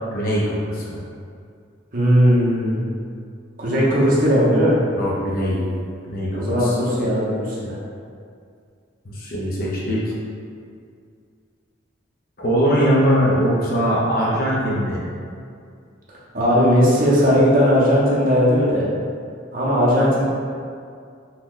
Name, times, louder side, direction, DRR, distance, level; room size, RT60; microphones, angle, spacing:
voice 1, 0.1-1.0 4.9-5.6 6.1-6.8 9.0-10.2 12.4-15.0, equal, 45° left, -6 dB, 0.5 m, -21 dB
voice 2, 1.9-2.8 3.6-4.8 6.3-7.8 16.3-18.9 19.5-20.2, equal, 45° right, -7 dB, 0.6 m, -17 dB
2.8 x 2.1 x 3.6 m, 2.3 s
head